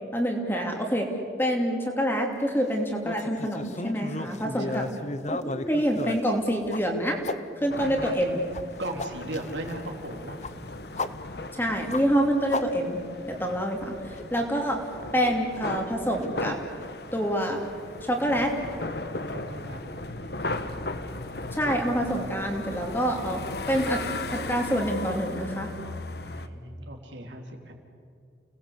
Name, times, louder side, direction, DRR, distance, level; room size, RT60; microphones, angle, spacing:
voice 1, 0.1-1.1 1.4-4.8 5.3-7.2 7.6-8.4 11.5-13.0 13.3-14.8 15.1-16.6 17.1-17.6 18.0-18.5 21.5-23.4 23.7-24.0 24.3-25.7, equal, 10° left, 1 dB, 2.8 m, -26 dB
sound 1, 3.0-7.4 7.9-13.3 13.6-13.7 14.1-14.4 15.2-15.9 16.2-16.3 16.8-16.9 18.2-18.3, left 2 dB, 35° left, 0.8 m, -35 dB
voice 2, 4.3-5.0 7.8-8.2 8.8-10.4 19.3-19.8 20.2-20.5 26.3-27.7, right 1 dB, 75° right, 2 dB, 3.6 m, -38 dB
sound 2, 7.7-26.5, left 2 dB, 55° left, 1.3 m, -37 dB
30.0 x 19.0 x 8.2 m, 2.5 s
head